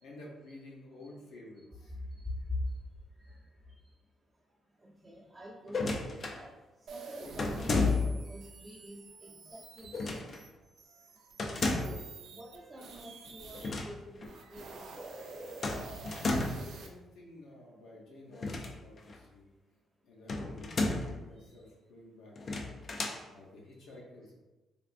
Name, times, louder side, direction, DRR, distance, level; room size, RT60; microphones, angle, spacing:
voice 1, 0.0-1.9 9.8-9.9 16.5-19.5 20.0-22.8 23.3-24.3, left 1 dB, 80° left, -3 dB, 0.9 m, -52 dB
voice 2, 4.8-6.5 6.9-10.4 11.7-14.9, equal, 25° right, -6 dB, 0.6 m, -49 dB
sound 1, 5.7-6.4 7.4-8.3 9.9-10.4 11.4-12.1 13.5-13.9 14.2-14.3 15.6-16.7 18.3-19.2 20.3-21.2 22.4-23.2, left 3 dB, 45° left, 0.4 m, -32 dB
sound 2, 6.9-13.7 14.2-16.9, right 3 dB, 75° right, 0.5 m, -48 dB
3.5 x 2.5 x 2.4 m, 1.1 s
cardioid pair, 90°, 0 cm